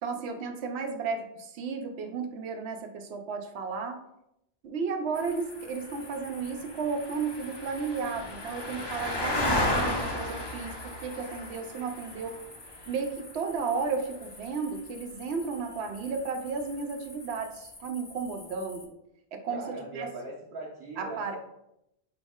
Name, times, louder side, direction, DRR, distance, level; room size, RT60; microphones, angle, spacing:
voice 1, 0.0-4.0 4.6-12.4 12.9-18.9 19.3-20.1 21.0-21.4, right 5 dB, 85° right, 6 dB, 0.9 m, -33 dB
sound 1, 5.1-18.8, left 1 dB, 30° left, 0.6 m, -36 dB
voice 2, 19.5-21.4, right 2 dB, 55° right, -4 dB, 0.9 m, -40 dB
4.9 x 3.1 x 3.5 m, 0.82 s
omnidirectional pair, 1.1 m